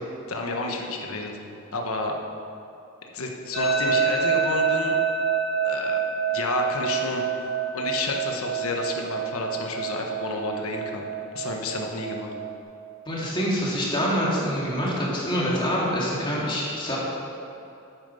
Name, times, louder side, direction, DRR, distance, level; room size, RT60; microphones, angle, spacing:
voice 1, 0.3-1.3 1.7-2.1 3.1-5.0 5.6-7.2 7.7-11.1 11.3-12.3, left 3 dB, 80° left, 1 dB, 1.3 m, -30 dB
sound 1, 3.5-12.6, right 6 dB, 40° right, 2.6 m, -27 dB
voice 2, 13.1-17.0, equal, 20° left, -5 dB, 2.2 m, -25 dB
9.2 x 8.9 x 5.5 m, 2.7 s
head